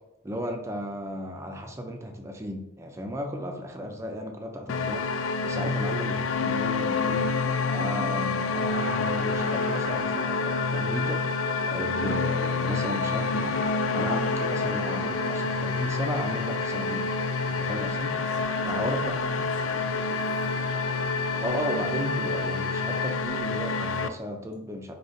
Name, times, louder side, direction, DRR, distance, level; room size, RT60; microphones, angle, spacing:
voice 1, 0.2-7.3 7.7-11.2 11.7-13.7 13.9-17.1 17.5-18.2 18.7-19.2 21.4-25.0, equal, 15° right, 3 dB, 0.4 m, -35 dB
sound 1, 4.7-24.1, left 4 dB, 85° left, 0.3 m, -28 dB
sound 2, 8.7-21.5, right 10 dB, 80° right, 0.8 m, -46 dB
voice 2, 18.1-20.5, left 1 dB, 65° left, -4 dB, 1.1 m, -44 dB
4.9 x 2.7 x 2.6 m, 0.90 s
head